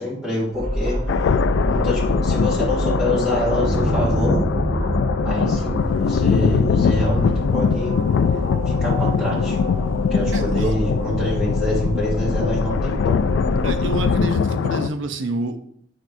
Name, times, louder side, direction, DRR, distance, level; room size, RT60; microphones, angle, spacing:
voice 1, 0.0-4.4 5.2-7.9 8.6-9.6 10.1-13.2, left 1 dB, 5° right, -7 dB, 2.2 m, -25 dB
sound 1, 0.5-14.2, equal, 40° right, 1.2 m, -26 dB
sound 2, 1.1-14.9, left 6 dB, 75° left, 0.3 m, -22 dB
voice 2, 10.3-10.8 13.6-15.6, right 2 dB, 85° right, 8 dB, 0.7 m, -28 dB
9.0 x 4.5 x 2.6 m, 0.66 s
head